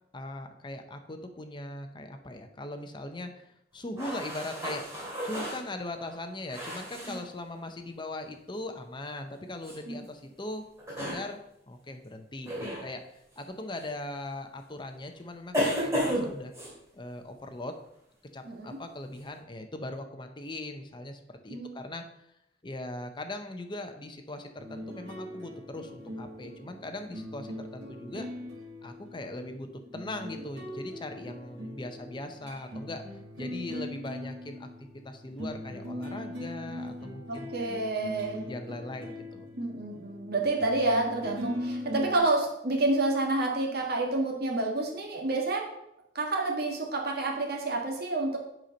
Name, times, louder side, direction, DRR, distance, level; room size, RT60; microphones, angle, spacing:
voice 1, 0.1-3.5 3.7-10.7 11.0-11.4 11.7-13.0 13.4-16.5 16.9-17.8 18.3-22.0 22.6-28.3 28.8-29.7 29.9-33.0 33.4-34.7 35.0-37.5 38.4-39.5, left 1 dB, 25° left, 6 dB, 0.7 m, -40 dB
sound 1, 4.0-7.2 9.6-9.8 10.8-11.2 12.5-12.9 13.8-13.9 15.5-16.7, equal, 15° right, 2.4 m, -32 dB
voice 2, 18.4-18.8 21.5-21.8 37.3-38.4 39.6-45.7 46.1-48.4, right 2 dB, 60° right, 0 dB, 1.6 m, -29 dB
sound 2, 24.6-42.2, left 1 dB, 75° right, 1.9 m, -41 dB
7.9 x 4.4 x 5.2 m, 0.81 s
head